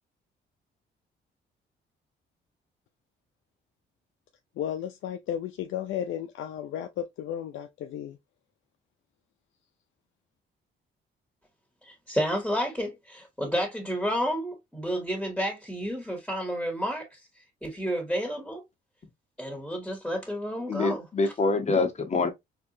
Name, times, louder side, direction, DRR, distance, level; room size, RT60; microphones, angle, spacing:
voice 1, 4.6-8.2, left 10 dB, 75° left, 0.5 m, -34 dB
voice 2, 11.9-17.2 17.6-18.6 19.4-21.0, equal, ahead, 1.9 m, -30 dB
voice 3, 20.7-22.3, left 3 dB, 35° left, 1.1 m, -25 dB
4.1 x 2.8 x 2.7 m
cardioid pair, 90°, 20 cm